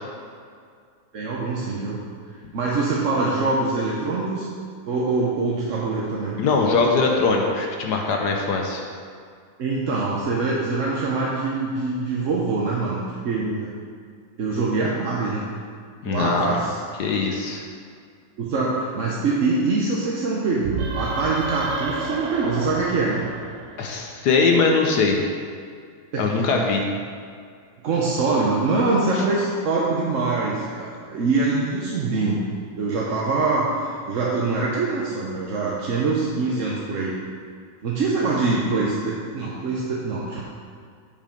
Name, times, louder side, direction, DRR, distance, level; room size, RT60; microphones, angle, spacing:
voice 1, 1.1-2.0 2.5-4.5 4.9-6.4 9.6-13.7 14.4-15.4 16.0-16.8 18.4-23.2 26.1-26.6 27.8-32.4 32.8-37.2 37.8-40.4, right 3 dB, 55° right, -4 dB, 0.9 m, -24 dB
voice 2, 6.4-8.8 16.0-16.5 17.0-17.6 23.8-25.2 26.2-26.8, left 4 dB, 65° left, 1 dB, 1.2 m, -21 dB
sound 1, 20.6-24.2, right 4 dB, 80° right, 1.6 m, -31 dB
7.3 x 5.5 x 5.1 m, 2.1 s
omnidirectional pair, 2.2 m